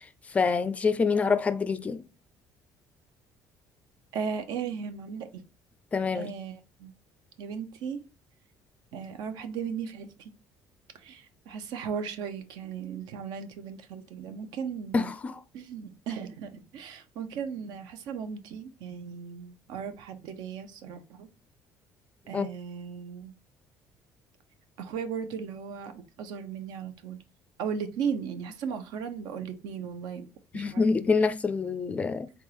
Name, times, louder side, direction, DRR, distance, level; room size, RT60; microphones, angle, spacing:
voice 1, 0.3-2.0 5.9-6.3 14.9-15.4 22.3-22.5 30.5-32.3, left 4 dB, 20° left, 0.4 m, -26 dB
voice 2, 4.1-5.4 6.1-6.9 7.4-8.0 8.9-10.3 10.9-15.1 15.5-21.3 22.3-23.3 24.8-27.2 27.6-30.3 30.5-30.8 31.2-31.3, right 6 dB, 80° right, 0.9 m, -36 dB
3.9 x 3.5 x 2.9 m
cardioid pair, 160°, 7 cm